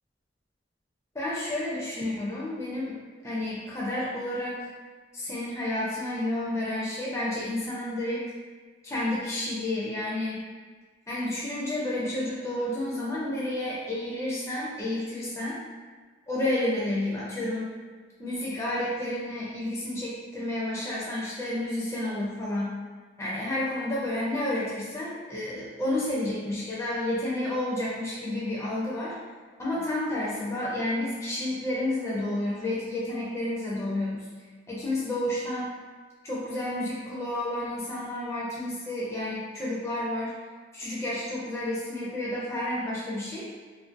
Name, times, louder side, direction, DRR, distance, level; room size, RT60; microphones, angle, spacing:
voice 1, 1.1-3.0 3.2-4.7 5.1-8.2 8.8-10.4 11.1-15.6 16.3-17.7 18.2-22.8 23.2-29.2 29.6-34.3 34.7-35.7 36.2-40.4 40.7-43.5, left 1 dB, 15° left, -7 dB, 0.4 m, -30 dB
2.4 x 2.1 x 2.5 m, 1.5 s
head